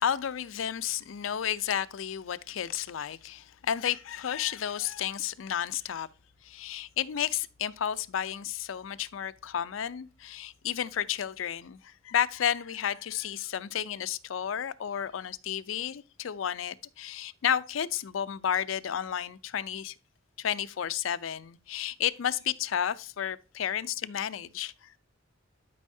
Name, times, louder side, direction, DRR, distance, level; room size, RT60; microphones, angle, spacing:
voice 1, 0.0-6.1 6.4-19.9 20.4-25.0, left 9 dB, 80° left, 0.5 m, -32 dB
11.5 x 5.4 x 2.7 m
head